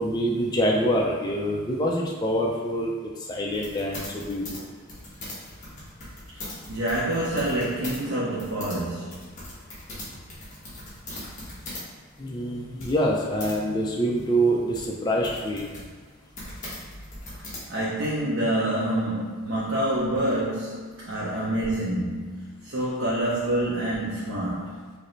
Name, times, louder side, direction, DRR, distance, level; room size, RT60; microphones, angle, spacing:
voice 1, 0.0-2.9 3.3-4.4 12.2-15.7, equal, 20° left, -2 dB, 0.4 m, -25 dB
sound 1, 3.5-8.0 8.3-11.9 12.2-12.3 12.8-13.5 14.2-18.1, left 1 dB, 35° left, 1.1 m, -40 dB
voice 2, 6.3-9.3 17.7-24.9, right 1 dB, 65° right, -7 dB, 0.7 m, -27 dB
4.9 x 2.1 x 3.1 m, 1.6 s
head